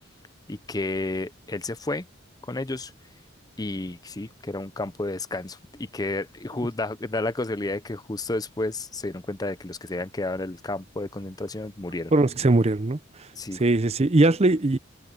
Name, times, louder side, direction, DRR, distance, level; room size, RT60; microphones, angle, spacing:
voice 1, 0.5-2.1 2.4-2.9 3.6-12.1 13.4-13.6, left 2 dB, 20° left, 0.6 m, -31 dB
voice 2, 12.1-13.0 13.5-14.8, right 2 dB, 30° right, 0.6 m, -20 dB
head